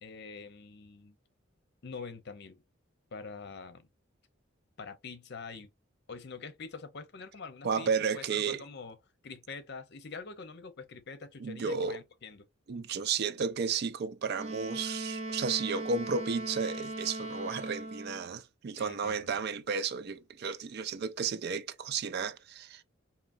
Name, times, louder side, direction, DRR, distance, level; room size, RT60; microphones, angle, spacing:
voice 1, 0.0-1.1 1.8-2.6 3.1-3.9 4.8-5.7 6.1-9.0 9.2-12.4 18.8-19.5, left 4 dB, 55° left, 0.7 m, -45 dB
voice 2, 7.6-8.6 11.4-12.0 12.7-22.8, right 5 dB, 55° right, 0.4 m, -33 dB
Wind instrument woodwind instrument, 14.3-18.3, right 2 dB, 30° right, 0.7 m, -38 dB
3.8 x 2.8 x 2.6 m
head